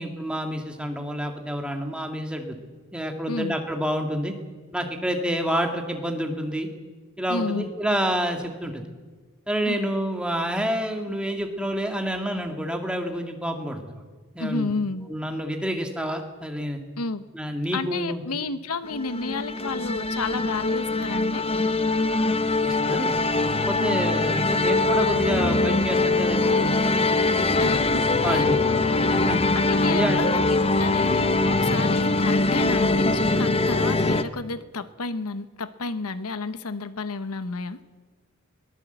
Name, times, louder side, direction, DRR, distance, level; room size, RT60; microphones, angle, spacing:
voice 1, 0.0-2.6 2.9-4.3 4.7-6.7 7.2-8.9 9.5-14.0 14.3-14.7 15.0-16.8 17.3-18.2 22.6-23.1 23.4-27.8 28.2-28.6 29.1-29.4 29.8-30.3, equal, 5° right, 3 dB, 2.0 m, -28 dB
voice 2, 7.3-7.7 9.6-9.9 14.4-15.1 17.0-17.2 17.7-21.5 23.8-24.0 27.6-28.8 29.5-37.8, left 3 dB, 90° left, 12 dB, 1.0 m, -31 dB
sound 1, 18.8-34.2, left 3 dB, 25° left, 0.7 m, -22 dB
22.0 x 18.5 x 8.0 m, 1.4 s
head